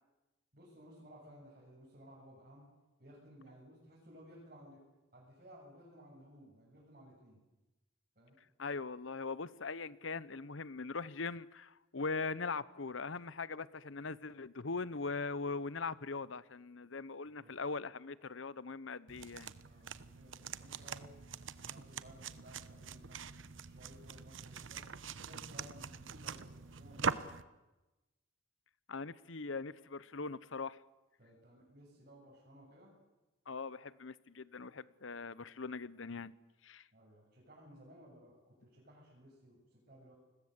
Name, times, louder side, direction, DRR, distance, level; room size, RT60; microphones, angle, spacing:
voice 1, 0.5-2.7 3.0-4.8 5.1-7.4 8.2-8.4 17.4-17.5 19.6-21.2 21.6-24.8 25.2-27.3 31.2-32.9 36.9-40.2, equal, 45° right, 7.8 m, -58 dB
voice 2, 8.6-19.5 28.9-30.8 33.5-36.3 36.6-36.9, left 4 dB, 75° left, 0.9 m, -41 dB
sound 1, 19.1-27.4, right 5 dB, 75° right, 1.0 m, -43 dB
29.5 x 21.0 x 8.3 m
head